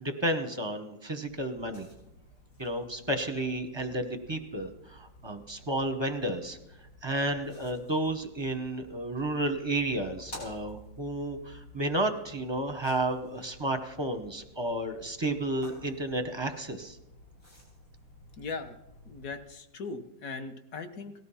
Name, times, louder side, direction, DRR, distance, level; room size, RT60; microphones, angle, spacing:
voice 1, 0.0-1.9 2.6-6.6 7.0-17.0, right 1 dB, 20° right, 6 dB, 0.7 m, -32 dB
sound 1, 1.3-19.4, equal, 75° left, 7.7 m, -53 dB
voice 2, 18.4-18.8 19.0-21.1, left 4 dB, 50° left, 7 dB, 1.4 m, -39 dB
18.0 x 13.0 x 5.6 m, 0.90 s
omnidirectional pair, 2.1 m